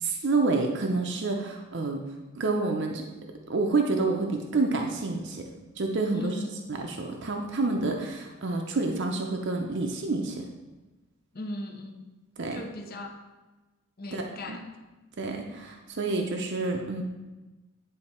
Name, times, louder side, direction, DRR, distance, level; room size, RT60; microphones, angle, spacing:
voice 1, 0.0-2.0 2.3-3.1 3.5-5.5 5.8-6.3 6.7-10.4 12.4-12.6 14.1-14.6 15.2-17.0, right 3 dB, 55° right, 2 dB, 0.6 m, -28 dB
voice 2, 6.1-6.6 11.3-12.1 12.5-13.1 14.0-14.6, left 1 dB, 45° left, 4 dB, 0.7 m, -37 dB
9.8 x 3.5 x 4.3 m, 1.1 s
head